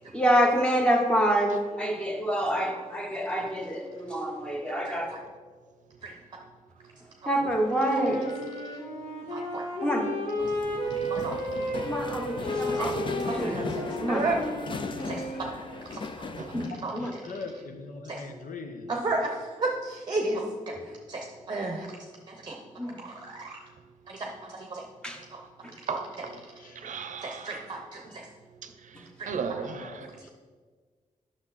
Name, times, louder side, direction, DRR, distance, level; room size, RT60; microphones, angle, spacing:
voice 1, 0.1-5.1 7.3-8.2 9.8-10.1 11.8-13.6 14.0-14.2 16.5-17.1 22.8-23.0 25.0-25.2 25.6-25.7, equal, 5° left, 2 dB, 1.1 m, -27 dB
voice 2, 4.0-4.6 12.3-12.4 13.9-14.1 14.9-15.1 16.4-16.5 17.0-17.2 18.2-18.5 25.9-26.4 26.7-27.7 28.6-30.3, right 6 dB, 65° right, 9 dB, 0.6 m, -38 dB
voice 3, 4.9-5.2 6.0-6.1 7.9-8.0 9.3-9.6 11.1-11.3 12.7-12.9 13.3-14.4 15.0-15.2 15.9-16.3 16.8-17.2 18.1-18.2 18.9-21.9 22.3-22.6 23.0-23.6 24.1-24.9 25.3-25.4 25.9-26.0 27.2-28.3 29.2-29.3, right 2 dB, 30° right, 1 dB, 0.8 m, -33 dB
Wind instrument woodwind instrument, 7.7-15.7, equal, 50° left, 2.2 m, -33 dB
voice 4, 7.8-8.2 16.3-16.4 16.8-18.9 26.3-26.9 29.6-30.3, left 4 dB, 80° left, 6 dB, 0.9 m, -42 dB
sound 1, 10.4-16.7, left 4 dB, 35° left, 0.5 m, -37 dB
9.8 x 6.2 x 4.1 m, 1.5 s
wide cardioid pair, 145°, 14 cm